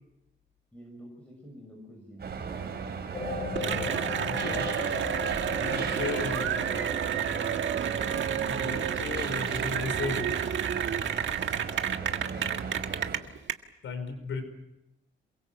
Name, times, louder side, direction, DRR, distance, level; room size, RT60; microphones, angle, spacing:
voice 1, 0.7-2.8 5.6-7.2 11.9-12.8, equal, 5° left, 1 dB, 6.8 m, -47 dB
sound 1, 2.2-13.2, right 6 dB, 55° right, 4.3 m, -37 dB
sound 2, 3.1-11.9 12.4-12.5, left 3 dB, 45° left, 4.3 m, -40 dB
voice 2, 3.6-4.8 5.5-6.9 8.0-10.4 13.8-14.4, left 4 dB, 90° left, 8 dB, 5.3 m, -36 dB
Cheering / Applause, 3.6-13.5, right 9 dB, 70° right, 1.7 m, -30 dB
28.0 x 22.5 x 7.7 m, 0.89 s
cardioid pair, 125°, 20 cm